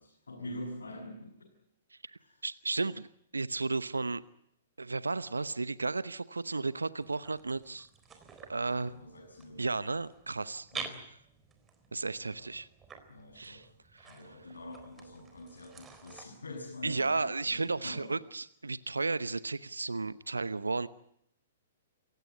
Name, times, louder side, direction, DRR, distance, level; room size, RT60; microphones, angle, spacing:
voice 1, 0.0-1.5 2.2-2.5 8.7-9.8 10.7-11.1 12.1-12.5 13.1-13.7 14.0-18.1, left 1 dB, 75° left, -1 dB, 6.8 m, -45 dB
voice 2, 2.4-3.1 3.3-4.2 4.8-7.9 8.5-8.9 9.6-10.7 11.9-12.7 13.3-13.6 14.0-14.1 16.8-20.9, right 3 dB, 85° right, 16 dB, 0.9 m, -33 dB
sound 1, 7.0-16.2, right 6 dB, 15° right, 4.0 m, -49 dB
28.5 x 16.5 x 9.5 m, 0.76 s
figure-of-eight pair, 115°, 0 cm